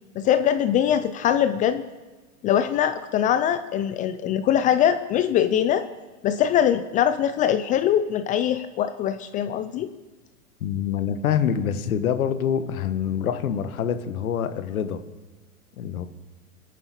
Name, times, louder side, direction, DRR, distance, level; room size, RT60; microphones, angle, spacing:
voice 1, 0.2-1.8 2.4-5.8 6.2-9.9, left 10 dB, 20° left, 10 dB, 0.4 m, -22 dB
voice 2, 10.6-15.0 15.8-16.1, left 8 dB, 70° left, 10 dB, 1.5 m, -25 dB
23.0 x 9.2 x 4.2 m, 1.3 s
hypercardioid pair, 110°, 43 cm